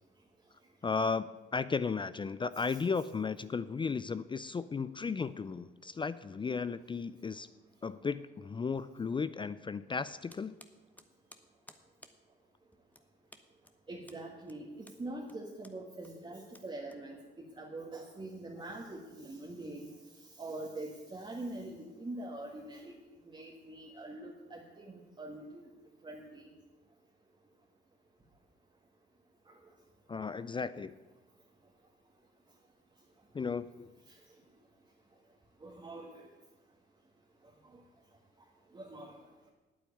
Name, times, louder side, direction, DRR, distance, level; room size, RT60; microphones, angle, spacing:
voice 1, 0.8-7.5 7.8-10.6 30.1-30.9 33.3-33.9, left 5 dB, 25° left, 15 dB, 0.4 m, -35 dB
sound 1, 10.3-17.5, left 1 dB, 10° left, 1.0 m, -59 dB
voice 2, 13.9-17.2 17.5-19.9 20.1-23.0 23.2-25.7 26.0-26.5 29.5-29.6 34.1-34.2 35.6-36.3 37.6-37.8 38.7-39.2, right 2 dB, 25° right, -2 dB, 1.7 m, -44 dB
9.1 x 8.7 x 8.5 m, 1.2 s
cardioid pair, 90°, 20 cm